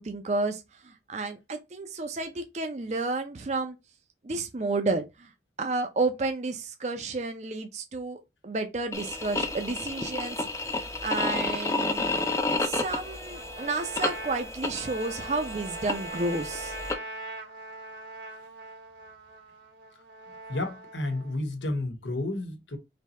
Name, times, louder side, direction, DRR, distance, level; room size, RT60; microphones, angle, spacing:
voice 1, 0.0-3.8 4.2-5.3 5.6-12.1 12.6-16.7, right 3 dB, 40° right, 0.5 m, -31 dB
sound 1, 8.9-16.9, left 2 dB, 15° left, 0.5 m, -31 dB
Trumpet, 13.3-21.4, right 2 dB, 85° right, 1.5 m, -42 dB
voice 2, 20.5-22.8, left 2 dB, 90° left, 1.0 m, -31 dB
3.4 x 2.8 x 4.2 m
head